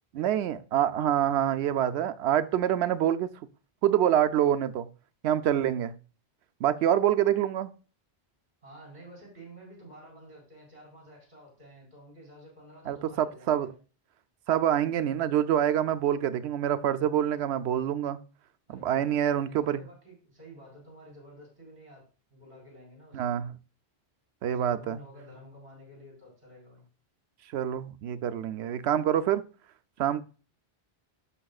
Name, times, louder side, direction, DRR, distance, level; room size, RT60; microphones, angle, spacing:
voice 1, 0.1-3.3 3.8-4.9 5.2-5.9 6.6-7.7 12.9-13.7 14.5-18.2 18.7-19.8 23.1-23.5 24.4-25.0 27.5-29.4 30.0-30.2, right 10 dB, 80° right, 0.8 m, -26 dB
voice 2, 8.6-13.7 18.7-22.0 22.3-23.3 24.5-26.8, equal, 45° right, 4.3 m, -51 dB
11.0 x 6.7 x 2.3 m
omnidirectional pair, 1.1 m